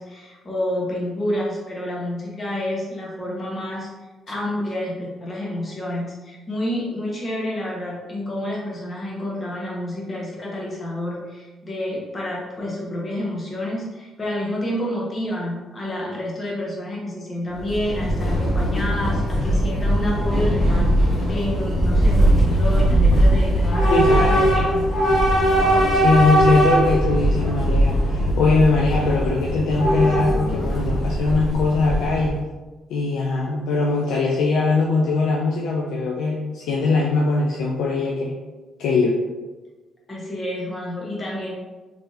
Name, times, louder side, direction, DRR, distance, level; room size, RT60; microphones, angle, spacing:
voice 1, 0.0-3.9 4.3-24.8 40.1-41.5, left 1 dB, 30° left, -4 dB, 1.2 m, -29 dB
Train / Subway metro underground, 17.5-32.4, right 1 dB, 50° left, 1.0 m, -20 dB
voice 2, 23.9-24.5 25.9-32.4 32.9-38.3 38.8-39.1, left 3 dB, 90° left, -2 dB, 0.4 m, -21 dB
3.4 x 3.4 x 2.6 m, 1.2 s
cardioid pair, 90°, 0 cm